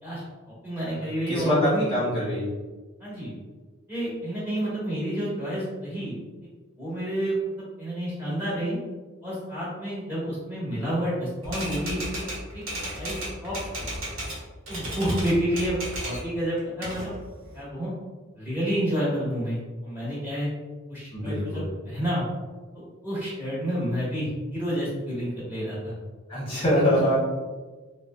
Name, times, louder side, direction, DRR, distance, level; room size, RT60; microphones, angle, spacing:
voice 1, 0.6-1.9 3.0-3.3 3.9-6.1 6.8-7.4 7.8-8.8 9.2-12.2 12.5-12.6 13.0-13.9 14.7-17.1 17.5-17.9 18.4-20.5 20.9-22.3 22.7-25.9, equal, 10° right, -8 dB, 1.2 m, -29 dB
voice 2, 1.3-2.5 21.1-21.6 26.3-27.2, equal, 25° left, -9 dB, 0.8 m, -24 dB
Typewriter, 11.4-14.4 14.7-16.3 16.6-17.6, right 1 dB, 75° right, 0.9 m, -34 dB
3.7 x 2.0 x 2.2 m, 1.3 s
head